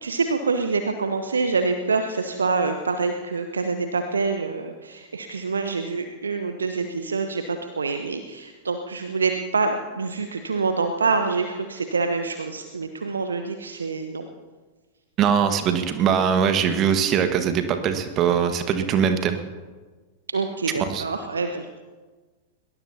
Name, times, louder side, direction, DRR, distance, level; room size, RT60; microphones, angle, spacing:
voice 1, 0.0-14.3 20.3-21.7, right 4 dB, 75° right, 7 dB, 1.0 m, -26 dB
voice 2, 15.2-19.4 20.8-21.0, right 7 dB, 35° right, 8 dB, 1.5 m, -21 dB
22.0 x 19.0 x 2.9 m, 1.3 s
figure-of-eight pair, 90°, 0 cm